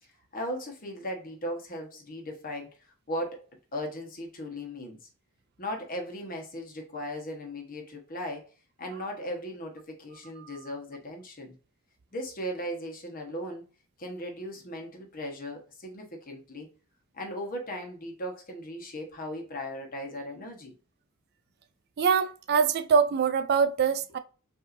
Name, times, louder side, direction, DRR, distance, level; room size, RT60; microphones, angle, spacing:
voice 1, 0.0-2.8 3.1-3.4 3.7-5.1 5.6-8.5 8.8-11.5 12.1-13.6 14.0-16.7 17.1-20.7, equal, 40° left, 1.1 m, -37 dB
voice 2, 22.0-24.2, right 6 dB, 50° right, 0.3 m, -24 dB
5.4 x 2.8 x 2.5 m
head